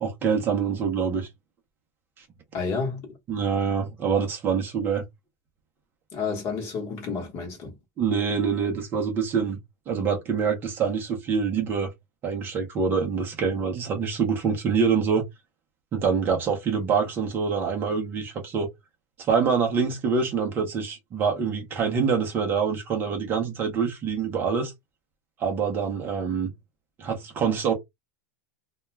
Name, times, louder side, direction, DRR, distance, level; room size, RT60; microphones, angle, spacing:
voice 1, 0.0-1.3 2.2-2.3 3.3-5.0 8.0-9.6 9.9-11.9 12.2-15.2 15.9-18.7 19.2-24.7 25.4-26.5 27.0-27.7, right 6 dB, 20° right, 0.6 m, -25 dB
voice 2, 2.5-3.1 6.1-7.8, left 5 dB, 30° left, 1.0 m, -30 dB
2.2 x 2.2 x 3.1 m
supercardioid pair, 165°, 9 cm